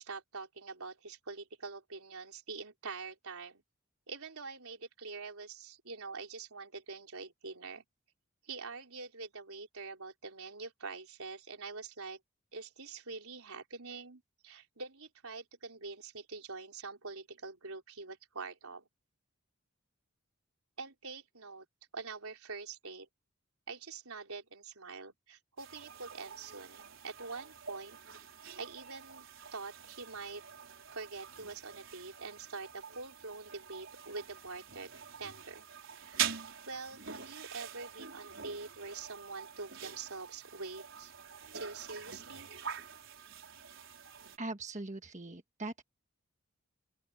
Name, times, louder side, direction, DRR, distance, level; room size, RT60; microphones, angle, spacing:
voice 1, 0.0-3.6 4.1-7.8 8.4-12.2 12.5-18.9 20.8-21.7 21.9-23.1 23.7-28.0 28.4-30.4 30.9-35.7 36.0-36.4 36.7-41.1 41.5-42.5, right 4 dB, 85° right, 4.2 m, -45 dB
sound 1, 25.6-44.4, right 8 dB, 65° right, 4.8 m, -45 dB
voice 2, 44.4-45.8, right 2 dB, 35° right, 1.5 m, -41 dB
open air
head